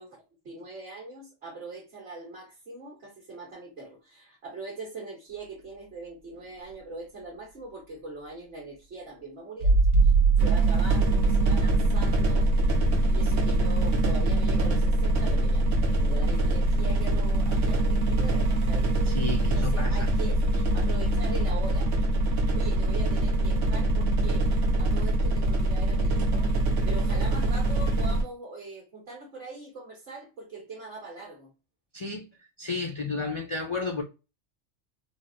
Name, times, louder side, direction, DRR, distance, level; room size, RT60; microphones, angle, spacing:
voice 1, 0.0-9.8 10.0-10.1 10.4-12.5 13.1-18.9 19.4-20.4 20.7-21.9 22.3-26.5 26.8-31.5, right 3 dB, 55° right, 1.4 m, -41 dB
sound 1, 9.6-14.2 16.0-16.1, right 5 dB, 85° right, 1.2 m, -24 dB
sound 2, 10.4-28.2, right 1 dB, 70° right, 1.2 m, -24 dB
voice 2, 19.1-20.0 31.9-32.2 32.6-34.0, left 3 dB, 50° left, 0.3 m, -32 dB
4.0 x 2.0 x 2.4 m
omnidirectional pair, 1.3 m